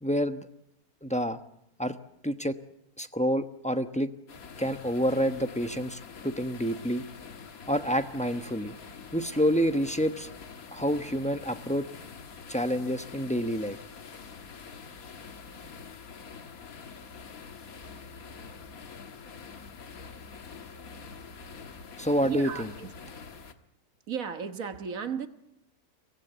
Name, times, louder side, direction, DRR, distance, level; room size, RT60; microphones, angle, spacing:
voice 1, 0.0-0.5 1.0-1.4 1.8-1.9 2.2-2.6 3.0-4.1 4.6-7.0 7.7-8.7 9.1-10.3 10.7-11.9 12.5-13.8 22.0-22.7, equal, 5° left, 8 dB, 0.7 m, -28 dB
sound 1, 4.3-23.5, left 5 dB, 65° left, 1.8 m, -46 dB
voice 2, 22.2-22.9 24.1-25.3, right 7 dB, 65° right, 9 dB, 1.7 m, -34 dB
24.5 x 18.0 x 8.1 m, 0.80 s
omnidirectional pair, 1.6 m